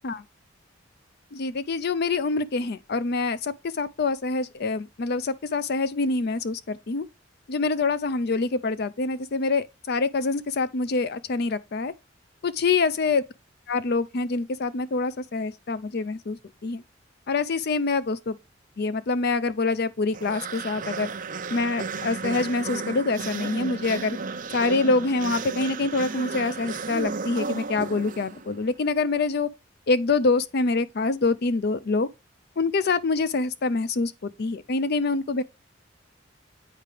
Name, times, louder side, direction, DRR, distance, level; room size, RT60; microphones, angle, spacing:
voice 1, 1.3-7.1 7.5-11.9 12.4-13.2 13.7-16.8 17.3-18.4 18.8-21.1 21.5-24.2 24.5-29.5 29.9-32.1 32.6-35.4, left 3 dB, 55° left, 0.5 m, -25 dB
sound 1, 20.1-28.6, right 4 dB, 45° right, 0.6 m, -34 dB
8.5 x 4.6 x 3.3 m
head